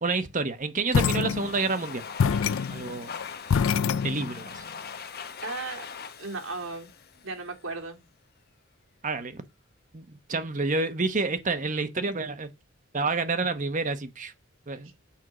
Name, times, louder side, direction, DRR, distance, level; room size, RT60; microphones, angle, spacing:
voice 1, 0.0-2.0 2.7-3.1 4.0-4.6 9.0-9.4 9.9-12.5 12.9-14.3 14.7-14.9, right 3 dB, 40° right, 1.1 m, -29 dB
sound 1, 0.9-1.8 2.2-4.6, left 6 dB, 70° left, 0.4 m, -26 dB
Domestic sounds home sounds, 0.9-7.8, left 6 dB, 50° left, 1.0 m, -42 dB
voice 2, 5.4-5.8 6.2-6.9 7.2-8.0 14.8-14.9, right 3 dB, 70° right, 2.5 m, -35 dB
8.7 x 4.6 x 6.2 m
head